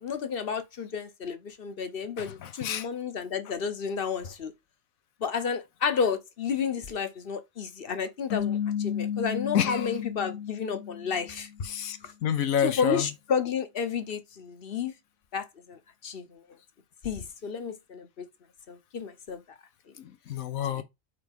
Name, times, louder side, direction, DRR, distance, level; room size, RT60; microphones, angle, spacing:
voice 1, 0.0-4.5 5.2-11.5 12.0-12.1 12.6-14.9 15.3-16.4 17.0-18.3 18.7-19.4 20.8-20.9, left 6 dB, 50° left, 1.0 m, -31 dB
voice 2, 2.2-2.9 9.5-9.9 11.7-13.0 20.0-20.8, left 8 dB, 90° left, 1.3 m, -29 dB
sound 1, 8.3-11.6, left 9 dB, 70° left, 1.2 m, -32 dB
4.9 x 4.6 x 5.3 m
omnidirectional pair, 1.4 m